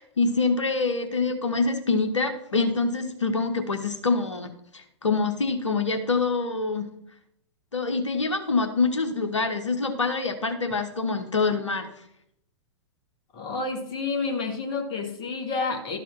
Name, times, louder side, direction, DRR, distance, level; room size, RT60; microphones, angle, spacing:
voice 1, 0.0-6.9 7.7-11.9, left 4 dB, 75° left, 5 dB, 1.0 m, -25 dB
voice 2, 13.3-16.0, left 4 dB, 30° left, 2 dB, 1.9 m, -29 dB
12.0 x 4.8 x 6.0 m, 0.75 s
figure-of-eight pair, 105°, 15 cm